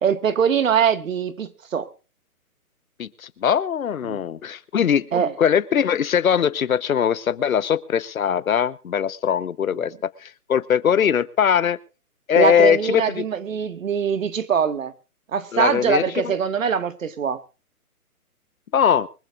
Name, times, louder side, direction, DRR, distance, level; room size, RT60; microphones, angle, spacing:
voice 1, 0.0-1.9 4.0-4.2 5.1-5.3 9.7-9.9 12.4-14.9 15.3-17.4, right 7 dB, 60° right, 1.8 m, -22 dB
voice 2, 3.0-5.1 5.4-11.8 12.3-13.2 15.5-16.1 18.7-19.1, left 8 dB, 65° left, 1.0 m, -21 dB
24.0 x 15.0 x 2.5 m
hypercardioid pair, 155°, 44 cm